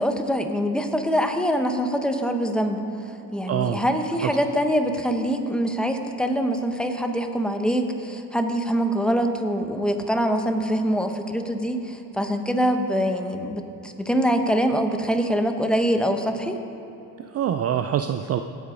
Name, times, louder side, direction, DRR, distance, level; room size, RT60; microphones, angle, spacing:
voice 1, 0.0-16.6, equal, ahead, 5 dB, 1.2 m, -24 dB
voice 2, 3.5-3.8 4.2-4.3 17.2-18.4, right 9 dB, 35° right, 8 dB, 0.5 m, -25 dB
18.0 x 8.4 x 5.2 m, 2.9 s
supercardioid pair, 85°, 44 cm